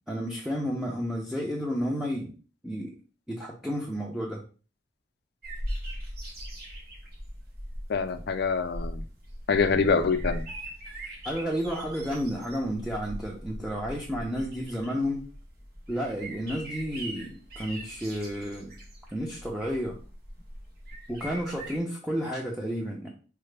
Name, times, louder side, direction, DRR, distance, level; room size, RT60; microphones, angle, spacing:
voice 1, 0.1-2.3 2.6-2.9 3.3-4.4 11.2-15.2 15.9-18.7 19.1-20.0 21.1-23.1, equal, ahead, -2 dB, 0.5 m, -31 dB
sound 1, 5.4-21.8, equal, 60° right, 1.2 m, -40 dB
voice 2, 7.9-9.0 9.5-10.4, left 5 dB, 65° left, 10 dB, 0.4 m, -25 dB
4.7 x 2.1 x 3.2 m, 0.37 s
head